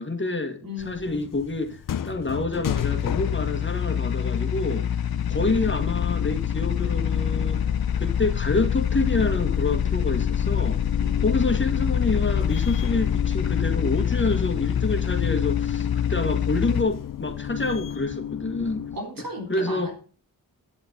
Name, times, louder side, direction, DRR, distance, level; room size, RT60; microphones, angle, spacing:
voice 1, 0.0-4.9 5.3-7.6 8.0-10.8 11.2-18.9 19.5-19.9, left 3 dB, 30° left, 1.8 m, -27 dB
voice 2, 0.6-1.3 11.0-11.6 18.9-20.0, left 1 dB, 65° right, 3.5 m, -36 dB
sound 1, 0.8-19.0, left 9 dB, 60° left, 0.6 m, -30 dB
sound 2, 2.7-16.8, left 9 dB, 75° left, 0.9 m, -26 dB
11.0 x 10.5 x 4.0 m
wide cardioid pair, 110°, 37 cm